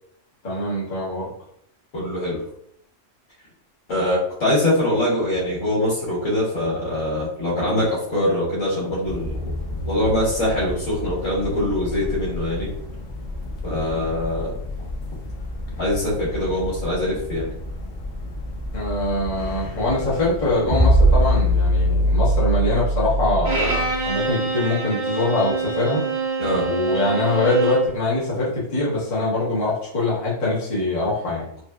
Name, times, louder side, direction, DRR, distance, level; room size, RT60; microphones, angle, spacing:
voice 1, 0.4-1.3 18.7-26.0 26.6-31.5, left 2 dB, 35° left, -8 dB, 1.0 m, -23 dB
voice 2, 1.9-2.4 3.9-9.3 9.9-12.7 13.6-14.5 15.8-17.5 26.4-26.7, left 1 dB, 75° left, -7 dB, 1.7 m, -23 dB
sound 1, 9.0-22.4, left 1 dB, 60° left, 0.7 m, -32 dB
sound 2, 20.7-24.1, right 1 dB, 75° right, 1.5 m, -19 dB
Bowed string instrument, 23.4-27.9, right 3 dB, 55° right, 0.9 m, -25 dB
4.2 x 2.1 x 2.2 m, 0.70 s
omnidirectional pair, 1.3 m